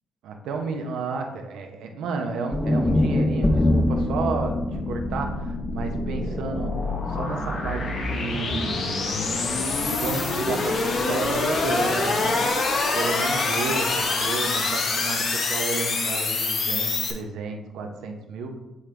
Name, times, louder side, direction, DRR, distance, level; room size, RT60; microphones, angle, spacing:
voice 1, 0.2-6.7 7.1-9.3 9.7-18.6, right 4 dB, 85° right, 4 dB, 0.8 m, -32 dB
sound 1, 2.5-6.8, left 1 dB, 15° left, 0.4 m, -24 dB
sound 2, 3.8-17.1, left 3 dB, 60° left, 1.2 m, -26 dB
7.9 x 3.6 x 3.4 m, 1.0 s
cardioid pair, 90°, 0 cm